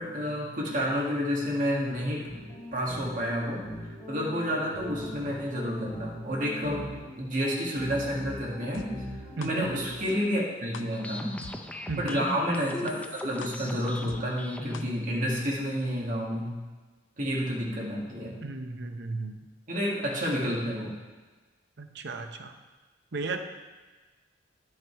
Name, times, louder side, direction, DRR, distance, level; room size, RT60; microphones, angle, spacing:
voice 1, 0.0-8.9 9.4-11.4 12.0-16.6 17.2-18.3 19.7-20.9, equal, 45° right, -4 dB, 2.1 m, -30 dB
sound 1, 2.3-10.2, equal, 25° left, 3.4 m, -41 dB
sound 2, 8.7-8.8 9.4-9.5 10.1-10.2 10.7-10.8 11.4-11.5 12.1-12.2 12.7-12.8 13.4-13.5 14.1-14.2 14.7-14.8 15.4-15.5, left 6 dB, 85° left, 0.5 m, -42 dB
voice 2, 9.4-9.7 11.9-12.2 18.4-19.4 21.8-22.5 23.1-23.4, right 3 dB, 65° right, 6 dB, 0.8 m, -34 dB
sound 3, 10.9-14.9, left 1 dB, 10° left, 0.5 m, -39 dB
10.5 x 6.6 x 4.6 m, 1.3 s
head